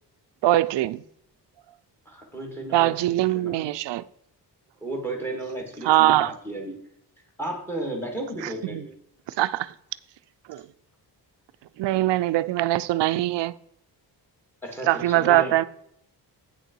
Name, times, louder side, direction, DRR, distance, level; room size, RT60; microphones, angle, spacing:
voice 1, 0.4-1.0 2.7-4.0 5.8-6.3 8.7-8.8 9.4-9.7 10.5-10.6 11.8-13.5 14.9-15.6, right 15 dB, 90° right, 0.5 m, -22 dB
voice 2, 2.1-3.6 4.8-6.8 7.4-8.9 14.6-15.6, right 1 dB, 5° left, 2.2 m, -34 dB
9.1 x 6.6 x 4.5 m
wide cardioid pair, 175°, 42 cm